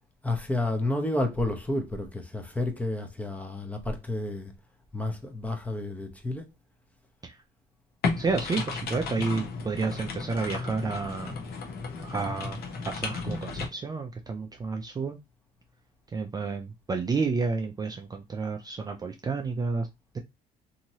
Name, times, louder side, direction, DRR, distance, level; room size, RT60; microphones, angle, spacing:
voice 1, 0.2-4.5 4.9-6.5, left 1 dB, 10° left, 0.7 m, -30 dB
sound 1, 8.0-13.7, left 4 dB, 65° left, 1.0 m, -34 dB
voice 2, 8.2-11.3 12.0-15.2 16.1-19.9, right 4 dB, 25° right, 0.4 m, -30 dB
2.9 x 2.8 x 2.7 m
cardioid pair, 110°, 17 cm